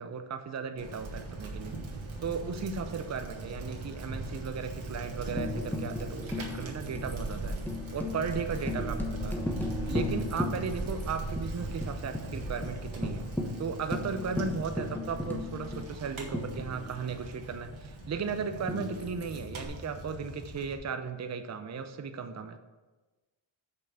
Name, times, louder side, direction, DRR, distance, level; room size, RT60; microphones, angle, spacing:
voice 1, 0.0-7.6 7.9-9.4 9.9-13.3 13.6-22.6, right 5 dB, 35° right, 8 dB, 0.6 m, -36 dB
Bicycle, 0.8-20.7, right 2 dB, 75° right, 1.7 m, -39 dB
Tambourine, 5.4-11.1 11.4-11.5 11.8-12.3 12.6-12.7 13.0-17.1 18.7-19.7, left 2 dB, 5° left, 1.0 m, -36 dB
6.1 x 5.4 x 6.7 m, 1.2 s
wide cardioid pair, 100°, 48 cm